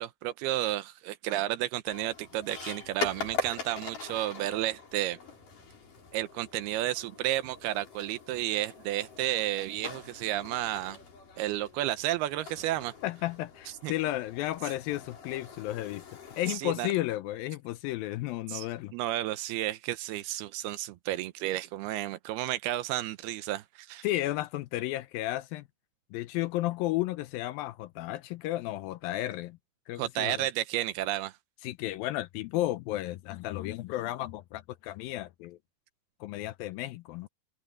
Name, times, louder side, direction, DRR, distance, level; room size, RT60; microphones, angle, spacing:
voice 1, 0.0-5.2 6.1-11.0 11.4-12.9 13.8-13.9 16.5-16.9 18.5-18.7 18.9-24.1 30.0-31.4, right 14 dB, 85° right, 2.8 m, -32 dB
sound 1, 1.9-16.6, left 4 dB, 55° left, 6.3 m, -42 dB
voice 2, 13.0-16.0 16.4-18.9 24.0-25.7 26.1-29.6 29.9-30.5 31.6-35.6 36.2-37.3, left 16 dB, 80° left, 2.2 m, -33 dB
omnidirectional pair, 4.4 m